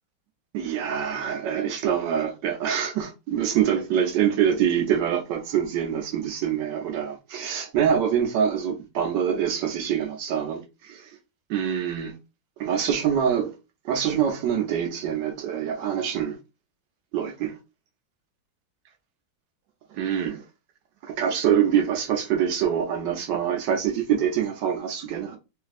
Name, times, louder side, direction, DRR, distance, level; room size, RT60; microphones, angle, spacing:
voice 1, 0.5-11.2 11.5-12.1 12.6-13.5 13.8-16.4 17.1-17.6 19.9-20.4 21.0-25.4, right 8 dB, 75° right, 1.2 m, -25 dB
3.1 x 2.6 x 2.4 m
omnidirectional pair, 2.1 m